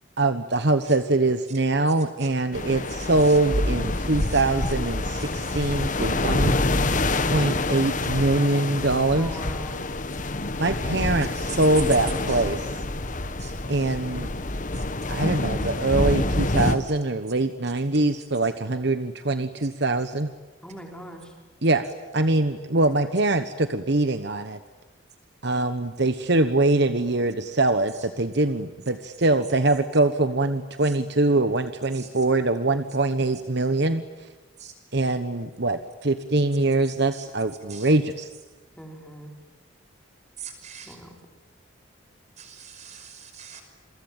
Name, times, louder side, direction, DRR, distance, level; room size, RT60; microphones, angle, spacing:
voice 1, 0.2-6.6 7.3-9.3 10.6-12.7 13.7-14.3 15.1-20.3 21.6-21.9 22.1-24.6 25.4-34.0 34.9-38.3, right 2 dB, 55° right, 10 dB, 1.2 m, -23 dB
sound 1, 2.5-16.8, left 2 dB, 40° left, 1.3 m, -27 dB
voice 2, 2.9-3.4 4.3-4.4 5.2-5.6 8.0-8.1 11.5-11.6 12.3-12.5 13.4-13.5 14.7-14.8 16.6-16.7 17.6-17.7 18.4-18.5 27.9-28.1 30.8-31.0 31.9-32.3 34.6-34.7 36.9-37.2 37.7-37.9 40.4-41.0 42.4-43.6, right 8 dB, 35° right, 7 dB, 5.4 m, -44 dB
voice 3, 9.2-9.8 20.6-21.4 38.7-39.3 40.8-41.2, equal, 5° left, 2 dB, 4.2 m, -41 dB
28.0 x 23.0 x 9.0 m, 1.2 s
head